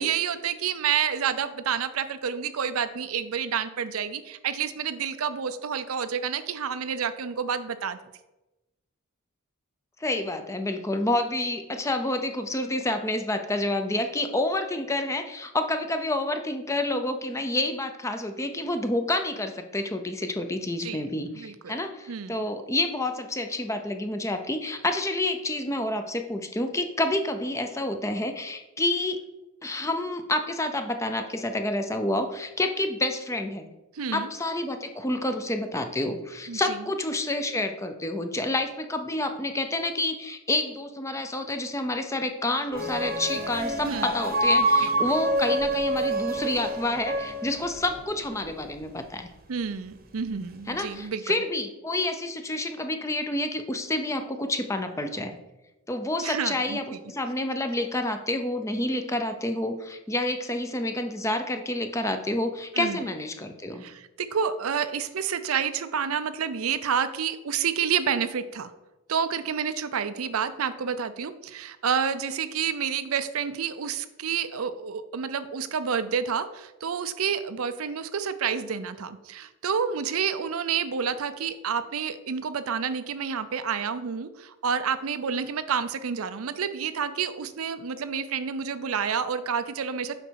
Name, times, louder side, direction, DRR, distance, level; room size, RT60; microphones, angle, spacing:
voice 1, 0.0-8.0 20.8-21.0 21.3-21.8 22.1-22.4 33.9-34.3 36.5-36.8 43.8-44.1 44.8-44.9 49.5-51.3 56.2-57.0 62.7-63.0 63.8-68.7 69.1-90.1, right 7 dB, 80° right, 12 dB, 0.5 m, -29 dB
voice 2, 10.0-29.2 29.6-33.7 34.1-49.3 50.7-55.4 55.9-63.8, left 1 dB, 15° left, 7 dB, 0.5 m, -29 dB
sound 1, 42.7-48.0, right 1 dB, 45° right, 0.9 m, -26 dB
7.8 x 5.2 x 4.6 m, 1.0 s
head